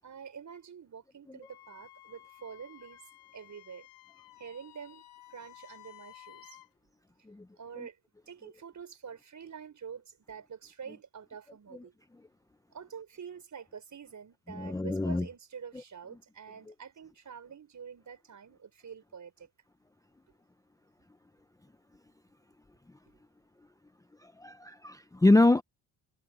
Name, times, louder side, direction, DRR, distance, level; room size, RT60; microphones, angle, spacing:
voice 1, 0.0-3.1 3.3-3.9 4.4-5.0 5.3-6.6 7.6-8.0 8.3-11.9 12.7-19.5, right 7 dB, 45° right, 6.4 m, -47 dB
Wind instrument woodwind instrument, 1.4-6.7, left 15 dB, 80° left, 5.9 m, -54 dB
voice 2, 14.5-15.3 24.2-25.6, left 2 dB, 10° left, 0.8 m, -25 dB
cardioid pair, 80°, 41 cm